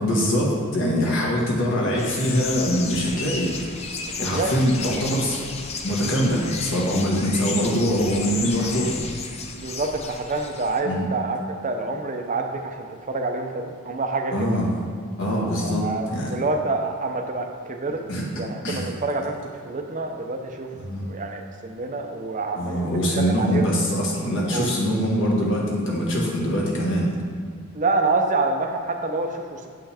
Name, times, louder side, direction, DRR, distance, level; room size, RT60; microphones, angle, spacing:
voice 1, 0.0-3.5 4.2-5.4 5.8-9.0 10.8-11.1 14.3-14.7 15.2-15.8 16.1-16.4 18.1-18.2 18.6-18.8 20.9-21.0 22.6-27.1, equal, 60° left, -4 dB, 1.5 m, -23 dB
sound 1, 2.0-10.8, left 4 dB, 30° left, 0.5 m, -33 dB
voice 2, 4.0-4.5 9.5-14.6 15.6-18.0 18.4-19.4 19.7-20.7 21.1-23.7 24.5-24.7 27.7-29.7, right 3 dB, 35° right, 4 dB, 0.6 m, -27 dB
8.5 x 5.5 x 3.5 m, 2.1 s
head